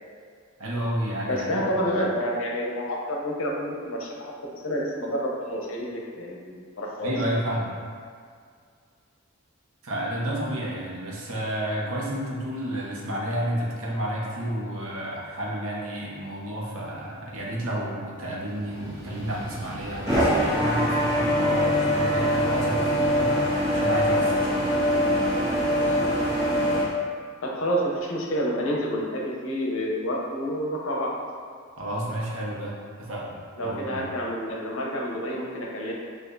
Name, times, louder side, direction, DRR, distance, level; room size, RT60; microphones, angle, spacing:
voice 1, 0.6-1.5 1.8-1.9 7.0-7.7 9.8-23.4 23.7-24.7 31.8-32.7 33.0-34.0, right 1 dB, 85° right, -4 dB, 1.0 m, -31 dB
voice 2, 1.3-7.1 27.4-31.2 33.6-35.9, equal, 70° left, -2 dB, 0.7 m, -29 dB
sound 1, 18.6-26.8, equal, 15° right, 1.4 m, -24 dB
6.5 x 2.5 x 2.6 m, 2.1 s
head